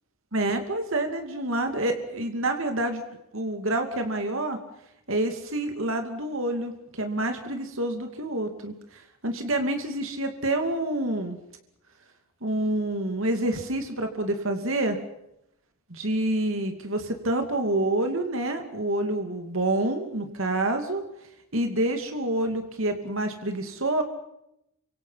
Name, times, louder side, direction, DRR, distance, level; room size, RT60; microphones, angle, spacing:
voice 1, 0.3-3.0 3.3-4.6 5.1-11.4 12.4-15.0 15.9-21.0 21.5-24.0, right 1 dB, 70° right, 5 dB, 2.7 m, -27 dB
29.5 x 25.5 x 5.8 m, 0.81 s
head